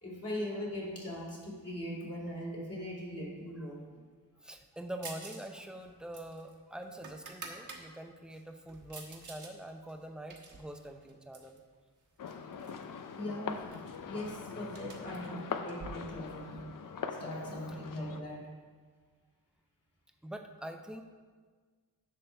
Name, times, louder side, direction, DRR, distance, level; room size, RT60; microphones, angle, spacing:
voice 1, 0.0-3.8 13.1-13.6 13.9-16.6 17.2-18.4, left 1 dB, 40° left, -4 dB, 2.7 m, -40 dB
voice 2, 4.4-11.6 17.1-17.2 20.2-21.0, right 1 dB, ahead, 5 dB, 0.6 m, -45 dB
sound 1, 5.0-5.5 5.8-7.8 8.3-9.5 9.9-11.6 12.3-12.8 13.1-13.2 13.5-16.6, right 3 dB, 50° right, 1.3 m, -49 dB
sound 2, 12.2-18.2, left 6 dB, 60° left, 0.6 m, -42 dB
10.5 x 7.4 x 3.4 m, 1.5 s
wide cardioid pair, 145°, 38 cm